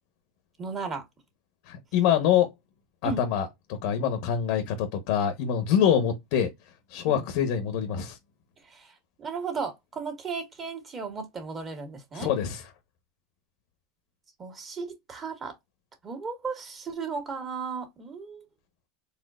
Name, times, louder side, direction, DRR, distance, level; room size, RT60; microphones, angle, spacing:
voice 1, 0.6-1.0 3.0-3.2 7.1-7.2 8.6-12.3 14.4-15.5 16.0-18.5, right 5 dB, 30° right, 1.7 m, -35 dB
voice 2, 1.7-2.5 3.0-6.5 6.9-8.2 12.1-12.6, left 9 dB, 65° left, 0.9 m, -25 dB
4.2 x 2.4 x 2.4 m
supercardioid pair, 125°, 0 cm